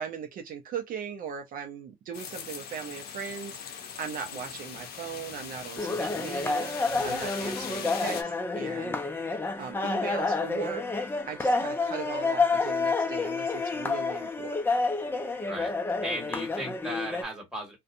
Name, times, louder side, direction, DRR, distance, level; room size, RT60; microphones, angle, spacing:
voice 1, 0.0-9.0 9.6-10.8 11.3-14.6, right 7 dB, 55° right, 0.5 m, -38 dB
sound 1, 2.1-8.2, left 7 dB, 65° left, 0.6 m, -40 dB
sound 2, 5.8-17.2, left 3 dB, 15° left, 0.5 m, -29 dB
voice 2, 16.0-17.8, equal, 5° right, 1.5 m, -36 dB
2.6 x 2.2 x 2.6 m
cardioid pair, 110°, 17 cm